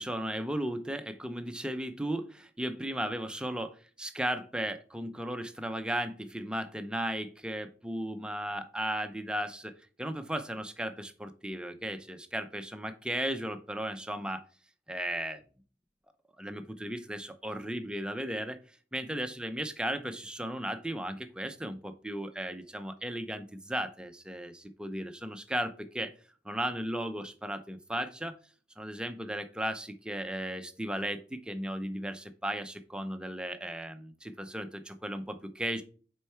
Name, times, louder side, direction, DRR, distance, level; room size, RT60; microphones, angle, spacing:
voice 1, 0.0-9.7 10.0-14.4 14.9-15.4 16.4-18.6 18.9-26.1 26.4-28.4 28.8-35.8, right 1 dB, 5° right, 8 dB, 0.6 m, -35 dB
6.7 x 4.6 x 4.4 m, 0.39 s
head